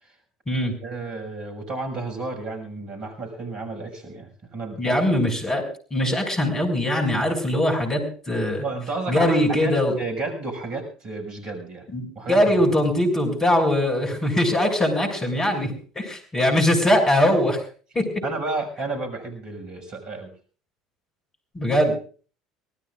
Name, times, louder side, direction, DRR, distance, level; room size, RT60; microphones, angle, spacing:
voice 1, 0.8-5.0 8.6-11.9 12.1-12.6 18.2-20.3, right 3 dB, 45° right, 4 dB, 6.4 m, -32 dB
voice 2, 4.8-5.6 5.9-8.6 9.1-9.9 11.9-17.6 17.9-18.1 21.5-21.9, left 1 dB, 20° left, 4 dB, 6.4 m, -21 dB
25.0 x 19.0 x 2.5 m, 0.40 s
figure-of-eight pair, 65°, 2 cm